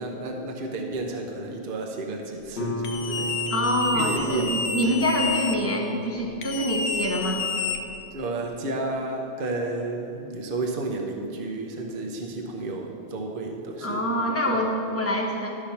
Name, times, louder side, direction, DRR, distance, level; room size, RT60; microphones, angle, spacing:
voice 1, 0.0-3.5 3.9-4.9 8.1-14.0 14.5-14.6, right 2 dB, 50° right, 1 dB, 1.0 m, -32 dB
Guitar, 2.6-8.0, equal, 60° left, 1.1 m, -36 dB
sound 1, 2.8-5.6 6.4-8.2, left 4 dB, 85° left, 1.1 m, -30 dB
voice 2, 3.5-7.4 13.8-15.5, equal, 10° left, -1 dB, 1.0 m, -25 dB
12.0 x 4.7 x 5.7 m, 3.0 s
omnidirectional pair, 1.3 m